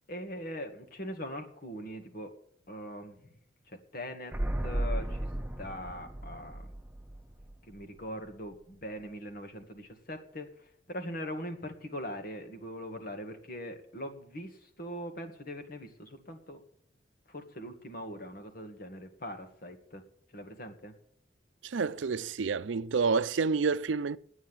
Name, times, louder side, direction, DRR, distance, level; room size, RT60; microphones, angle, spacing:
voice 1, 0.1-2.4 2.7-3.3 3.7-4.3 4.6-5.3 5.6-6.7 7.6-16.6 17.3-20.0 20.3-20.9, equal, 50° left, 2.0 m, -41 dB
sound 1, 4.3-8.1 8.3-8.4, right 1 dB, 10° right, 0.6 m, -35 dB
voice 2, 21.6-24.2, right 5 dB, 80° right, 0.5 m, -29 dB
9.8 x 9.2 x 9.1 m
head